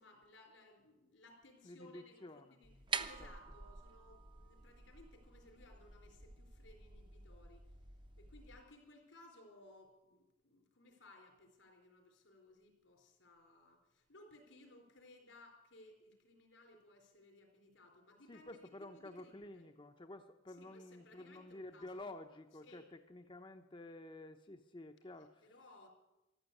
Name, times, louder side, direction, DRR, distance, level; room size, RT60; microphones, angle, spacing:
voice 1, 0.0-7.7 8.2-18.5 18.8-19.6 20.5-22.1 22.6-22.9 25.4-25.9, left 2 dB, 85° left, 3 dB, 4.5 m, -61 dB
voice 2, 1.6-2.6 3.2-3.3 18.3-25.5, left 2 dB, 25° left, 6 dB, 0.7 m, -51 dB
sound 1, 2.6-8.6, right 5 dB, 25° right, 0.7 m, -47 dB
14.5 x 11.5 x 8.4 m, 0.98 s
head